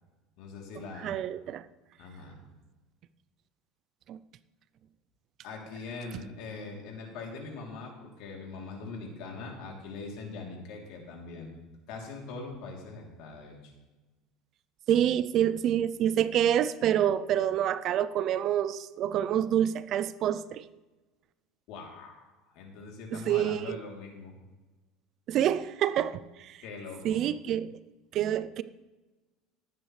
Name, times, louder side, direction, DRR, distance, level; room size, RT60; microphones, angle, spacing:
voice 1, 0.4-1.2 2.0-2.4 5.4-11.5 11.9-13.7 21.7-22.2 22.5-24.3 26.6-27.2, left 4 dB, 65° left, 3.1 m, -42 dB
voice 2, 1.0-1.6 4.1-4.2 14.9-20.6 23.1-23.8 25.3-26.6 27.0-27.8 28.1-28.6, right 10 dB, 45° right, 0.4 m, -27 dB
18.5 x 9.3 x 3.3 m
cardioid pair, 140°, 0 cm